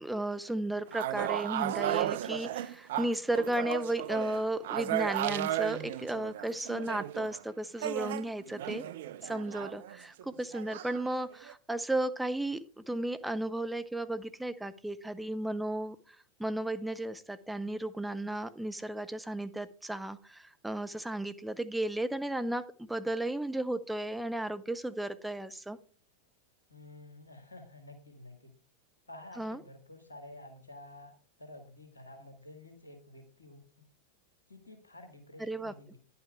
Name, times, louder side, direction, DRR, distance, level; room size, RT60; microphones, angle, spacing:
voice 1, 0.0-8.8 9.2-25.8 29.4-29.6 35.4-35.7, right 1 dB, 5° right, 9 dB, 0.6 m, -34 dB
sound 1, 0.9-7.4 7.8-10.2 10.5-11.5, right 13 dB, 55° right, 0.3 m, -35 dB
voice 2, 26.7-28.5 29.1-31.1 31.4-33.6 34.5-36.0, left 1 dB, 80° left, 4 dB, 1.7 m, -50 dB
10.5 x 5.7 x 4.5 m, 0.40 s
figure-of-eight pair, 90°, 0 cm